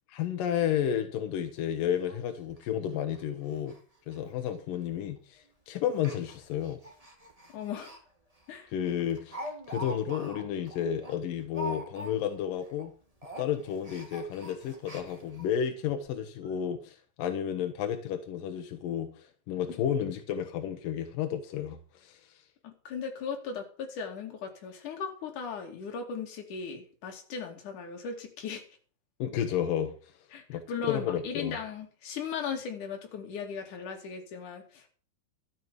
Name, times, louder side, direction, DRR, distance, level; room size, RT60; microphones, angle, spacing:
voice 1, 0.1-3.8 4.1-6.8 8.7-12.9 13.4-22.2 29.2-30.1 30.5-31.6, left 9 dB, 75° left, 2.1 m, -32 dB
Speech, 1.6-1.7 2.1-2.2 2.5-2.6 3.1-3.2 3.5-3.8 4.0-4.2 4.9-5.2 5.9-8.0 8.4-8.5 8.8-12.4 12.7-12.9 13.2-15.5 16.0-16.1 16.4-16.5, right 1 dB, 25° right, 0.8 m, -44 dB
voice 2, 7.5-7.9 8.5-8.7 22.6-28.6 30.3-34.9, left 6 dB, 45° left, 3.4 m, -37 dB
13.0 x 8.7 x 7.0 m
omnidirectional pair, 5.6 m